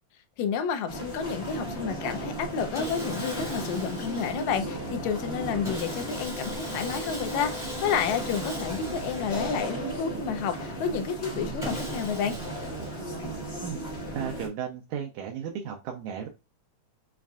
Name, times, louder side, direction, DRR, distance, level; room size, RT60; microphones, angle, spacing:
voice 1, 0.4-12.4, left 7 dB, 80° left, 1.9 m, -30 dB
sound 1, 0.9-14.5, right 1 dB, 55° left, 0.6 m, -35 dB
Sawing, 2.7-4.8 5.6-10.2 11.6-13.4, left 1 dB, ahead, 0.7 m, -40 dB
voice 2, 14.1-16.3, right 8 dB, 80° right, 2.0 m, -34 dB
7.2 x 2.5 x 2.3 m
omnidirectional pair, 3.4 m